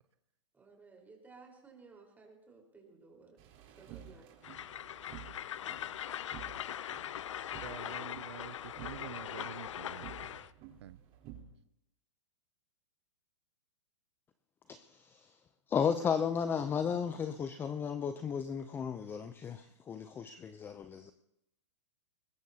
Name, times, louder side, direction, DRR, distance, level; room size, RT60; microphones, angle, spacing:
voice 1, 0.5-3.4 3.8-4.2, right 4 dB, 10° right, 4.3 m, -56 dB
sound 1, 3.4-11.4, right 10 dB, 35° right, 3.7 m, -52 dB
Train, 4.4-10.5, left 10 dB, 75° left, 0.5 m, -41 dB
voice 2, 7.6-10.5 10.8-11.0, right 11 dB, 65° right, 0.6 m, -48 dB
voice 3, 14.7-15.4 15.7-21.1, left 7 dB, 15° left, 0.5 m, -34 dB
21.0 x 20.5 x 2.8 m
hypercardioid pair, 140°, 16 cm